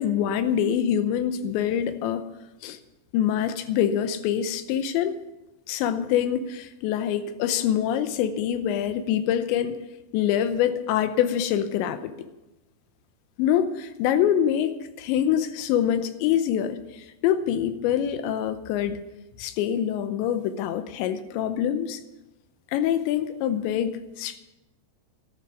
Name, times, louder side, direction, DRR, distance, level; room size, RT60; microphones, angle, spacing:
voice 1, 0.0-2.2 2.6-2.8 3.1-5.2 5.7-9.8 10.1-12.1 13.4-19.0 19.4-22.0 22.7-24.4, left 9 dB, 85° left, 10 dB, 3.1 m, -25 dB
13.0 x 11.5 x 6.3 m, 1.0 s
omnidirectional pair, 5.1 m